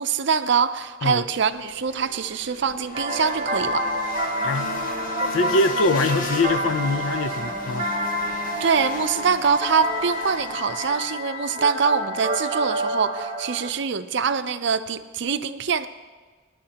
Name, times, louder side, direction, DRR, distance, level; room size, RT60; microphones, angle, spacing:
voice 1, 0.0-3.9 8.6-15.9, right 6 dB, 60° right, 11 dB, 0.6 m, -24 dB
sound 1, 1.3-11.2, left 1 dB, 45° left, 1.7 m, -37 dB
sound 2, 2.9-13.7, equal, 35° right, 1.2 m, -28 dB
voice 2, 4.4-4.7 5.3-7.9, left 2 dB, 85° left, 13 dB, 0.6 m, -23 dB
27.0 x 10.0 x 2.9 m, 1.4 s
head